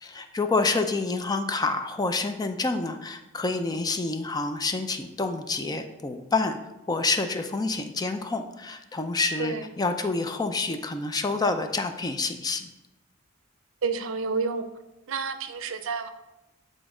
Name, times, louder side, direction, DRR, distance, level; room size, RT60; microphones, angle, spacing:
voice 1, 0.0-6.6 6.9-12.7, left 3 dB, 20° left, 7 dB, 0.4 m, -28 dB
voice 2, 13.8-14.7 15.1-16.1, right 5 dB, 75° right, 10 dB, 0.5 m, -29 dB
8.1 x 3.9 x 3.7 m, 0.97 s
head